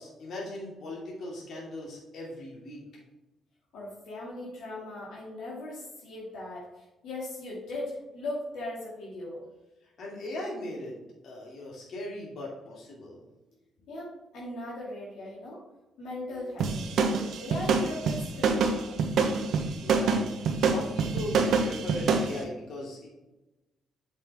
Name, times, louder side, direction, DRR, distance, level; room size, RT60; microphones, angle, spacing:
voice 1, 0.0-2.8 10.0-11.0 11.2-13.2 19.8-23.1, left 1 dB, 65° left, -3 dB, 2.7 m, -39 dB
voice 2, 3.7-9.4 13.9-15.6 16.0-16.7 17.1-19.0, left 1 dB, 80° left, -6 dB, 2.5 m, -39 dB
sound 1, 16.6-22.3, right 4 dB, 70° right, 1.0 m, -26 dB
7.4 x 5.8 x 3.6 m, 1.0 s
cardioid pair, 90°, 0 cm